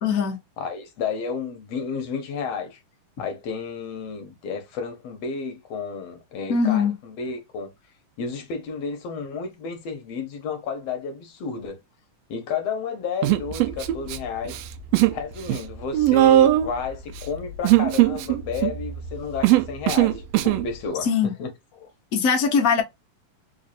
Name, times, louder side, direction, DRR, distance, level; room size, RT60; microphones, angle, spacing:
voice 1, 0.0-0.4 6.5-6.9 21.0-21.3 22.1-22.8, left 6 dB, 85° left, 0.7 m, -21 dB
voice 2, 0.6-2.8 3.2-7.7 8.2-11.8 12.3-14.6 15.1-21.9, left 5 dB, 65° left, 1.9 m, -32 dB
Human voice, 13.2-14.2 14.5-15.2 15.5-20.7, right 14 dB, 85° right, 1.4 m, -20 dB
4.8 x 2.6 x 2.5 m
omnidirectional pair, 3.5 m